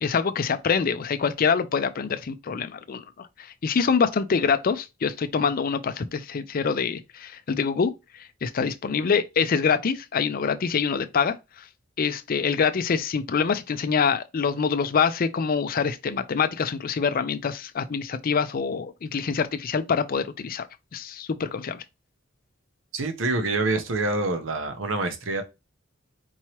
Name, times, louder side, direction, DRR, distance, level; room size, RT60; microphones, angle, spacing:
voice 1, 0.0-3.3 3.6-7.9 8.4-11.4 12.0-20.7 20.9-21.8, left 6 dB, 45° left, 0.4 m, -25 dB
voice 2, 22.9-25.4, right 2 dB, 70° right, 0.9 m, -26 dB
4.5 x 3.0 x 3.0 m
head